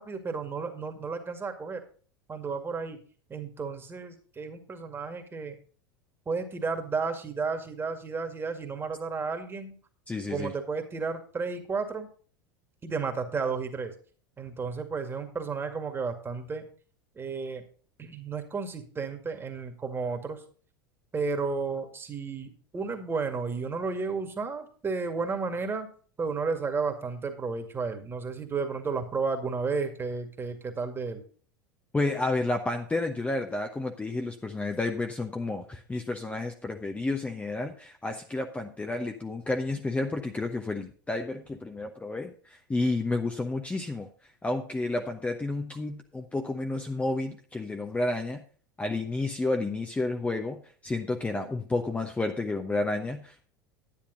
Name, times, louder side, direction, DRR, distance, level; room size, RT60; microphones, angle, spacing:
voice 1, 0.0-1.8 2.3-3.0 3.3-5.5 6.3-9.8 10.2-12.1 12.8-13.9 14.4-16.6 17.2-17.6 18.0-20.4 21.1-25.9 26.2-31.2, right 4 dB, 20° right, 5 dB, 2.1 m, -32 dB
voice 2, 10.1-10.5 31.9-44.1 44.4-48.4 48.8-53.5, left 2 dB, 10° left, 4 dB, 1.0 m, -31 dB
10.5 x 10.0 x 3.9 m, 0.42 s
figure-of-eight pair, 80°, 11 cm